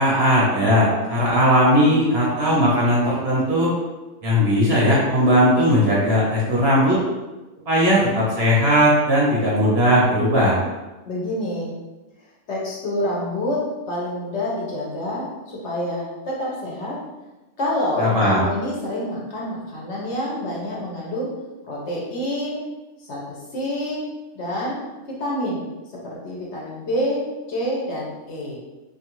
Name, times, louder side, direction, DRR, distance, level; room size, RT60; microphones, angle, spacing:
voice 1, 0.0-3.7 4.2-7.0 7.7-10.6 18.0-18.4, equal, 55° right, -5 dB, 0.8 m, -18 dB
voice 2, 11.0-11.7 12.5-17.0 17.6-21.3 21.6-22.6 23.0-24.0 24.3-24.8 25.2-25.6 25.9-28.6, left 1 dB, 60° left, -4 dB, 0.9 m, -27 dB
2.6 x 2.4 x 2.9 m, 1.1 s
omnidirectional pair, 1.4 m